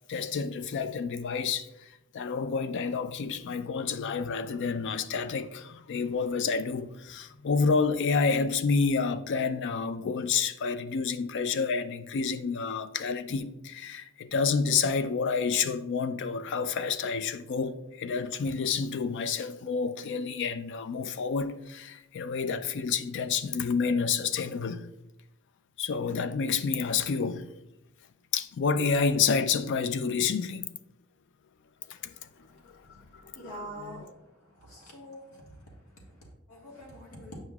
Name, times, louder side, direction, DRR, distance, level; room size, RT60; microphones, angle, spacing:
voice 1, 0.1-1.7 2.1-24.8 25.8-27.5 28.3-30.7 31.9-32.1 32.7-34.1, left 5 dB, 55° left, 0.4 m, -29 dB
voice 2, 33.3-34.1 34.7-35.3 36.5-37.4, equal, 90° left, 1.5 m, -43 dB
7.5 x 5.3 x 2.3 m
head